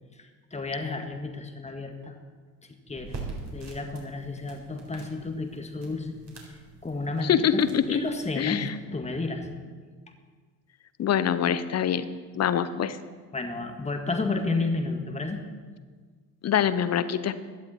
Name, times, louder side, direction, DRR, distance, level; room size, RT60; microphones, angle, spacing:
voice 1, 0.2-2.1 2.9-3.2 3.5-6.2 6.8-7.6 7.9-9.5 13.3-15.4, left 3 dB, 15° left, 5 dB, 1.9 m, -31 dB
sound 1, 2.9-8.4, right 3 dB, 35° right, 4.1 m, -44 dB
voice 2, 7.2-8.0 8.4-8.7 11.0-12.1 12.3-13.0 16.4-17.4, left 9 dB, 30° left, 14 dB, 0.9 m, -24 dB
16.5 x 11.5 x 4.5 m, 1.5 s
figure-of-eight pair, 60°, 48 cm